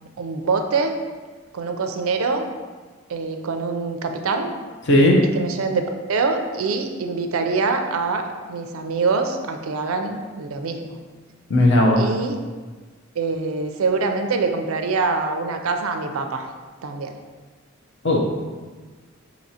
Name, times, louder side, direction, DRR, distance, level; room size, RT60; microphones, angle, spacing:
voice 1, 0.2-0.9 1.5-2.4 3.1-4.6 5.3-8.2 8.5-10.9 12.0-12.4 13.2-16.5 16.8-17.1, right 4 dB, 80° right, 5 dB, 0.4 m, -24 dB
voice 2, 4.9-5.2 11.5-12.0 18.0-18.2, left 1 dB, 60° left, 0 dB, 0.7 m, -15 dB
5.9 x 2.8 x 2.8 m, 1.4 s
head